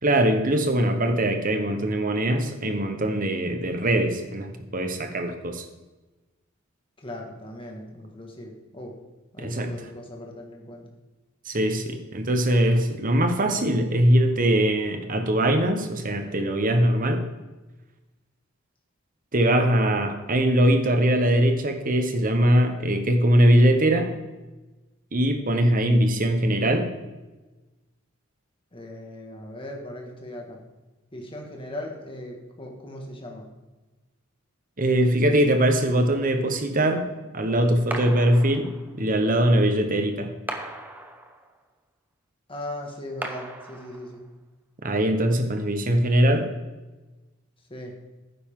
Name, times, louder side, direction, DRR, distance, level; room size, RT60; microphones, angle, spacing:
voice 1, 0.0-5.6 9.4-9.9 11.4-17.2 19.3-24.1 25.1-26.9 34.8-37.1 37.3-38.7 39.0-40.3 44.8-46.5, right 1 dB, 40° right, 6 dB, 1.2 m, -21 dB
voice 2, 7.0-9.0 9.3-10.9 28.7-30.6 31.1-33.5 42.5-44.2 47.7-48.0, left 1 dB, 25° left, 1 dB, 2.0 m, -38 dB
sound 1, 37.9-39.0 40.5-41.6 43.2-44.3, right 1 dB, 10° right, 1.0 m, -37 dB
12.0 x 9.6 x 3.8 m, 1.1 s
head